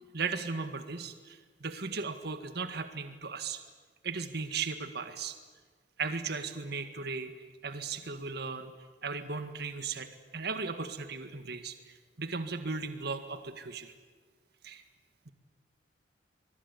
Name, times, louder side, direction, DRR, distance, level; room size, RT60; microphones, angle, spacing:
voice 1, 0.1-3.6 4.0-5.4 6.0-7.3 7.6-8.7 9.0-13.9 14.6-14.8, right 4 dB, 60° right, 8 dB, 1.9 m, -37 dB
25.0 x 22.0 x 9.9 m, 1.4 s
head